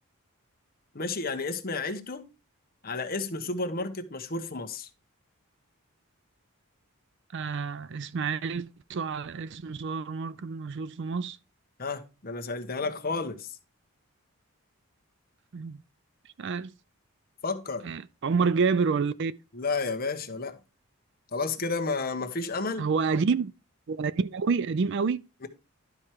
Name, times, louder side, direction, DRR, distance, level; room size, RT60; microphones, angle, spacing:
voice 1, 0.9-2.3 2.8-4.9 11.8-13.6 17.4-17.8 19.5-20.6 21.3-22.9 25.4-25.5, left 3 dB, 40° left, 1.0 m, -31 dB
voice 2, 7.3-11.4 15.5-15.8 16.4-16.7 17.8-19.3 22.8-23.5 23.9-25.2, right 5 dB, 55° right, 0.4 m, -28 dB
11.5 x 4.4 x 4.7 m
head